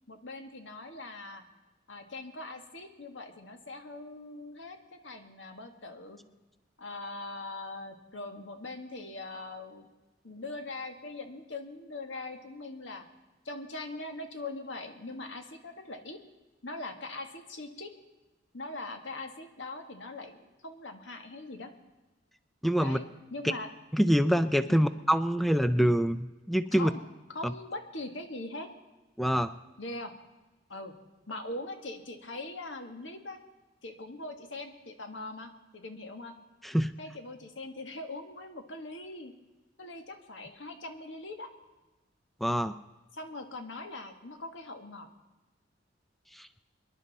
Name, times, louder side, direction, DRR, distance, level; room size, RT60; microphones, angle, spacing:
voice 1, 0.1-1.4 1.9-6.2 6.8-9.9 10.2-13.1 13.4-16.2 16.6-17.9 18.5-21.7 22.8-23.7 24.7-24.9 26.7-27.0 27.3-28.7 29.8-30.1 30.7-30.9 31.3-33.4 33.8-36.3 37.0-39.3 39.8-41.5 43.1-45.1, left 2 dB, 80° left, 6 dB, 1.6 m, -41 dB
voice 2, 22.6-23.0 23.9-26.9 27.4-27.5 29.2-29.5 36.6-36.9 42.4-42.7 46.3-46.5, equal, ahead, 12 dB, 0.4 m, -25 dB
25.0 x 11.0 x 4.1 m, 1.1 s
head